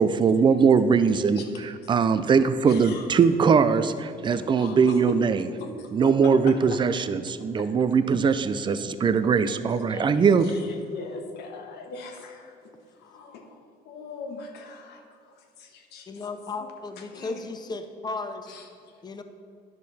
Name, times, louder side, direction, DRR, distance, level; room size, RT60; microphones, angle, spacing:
voice 1, 0.0-1.4 1.9-5.4 5.9-10.5, right 6 dB, 30° right, 12 dB, 0.4 m, -21 dB
voice 2, 2.6-3.1 3.8-4.0 4.3-6.8 7.4-7.7 8.2-8.3 8.7-8.8 9.7-9.8 10.4-16.1 17.0-17.4 18.5-19.0, left 4 dB, 80° left, 3 dB, 1.2 m, -40 dB
voice 3, 16.1-18.5 19.0-19.2, left 3 dB, 25° left, 8 dB, 0.6 m, -35 dB
10.5 x 6.4 x 4.1 m, 2.4 s
cardioid pair, 110°, 17 cm